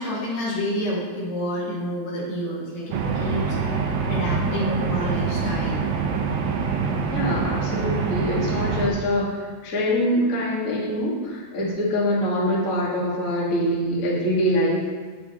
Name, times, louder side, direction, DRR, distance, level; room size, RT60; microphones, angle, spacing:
voice 1, 0.0-5.8 11.6-11.7, equal, 60° left, -7 dB, 3.7 m, -29 dB
sound 1, 2.9-8.9, right 5 dB, 80° right, 2.8 m, -25 dB
voice 2, 7.1-14.8, equal, 85° left, -5 dB, 0.7 m, -24 dB
8.6 x 8.3 x 3.0 m, 1.5 s
omnidirectional pair, 4.8 m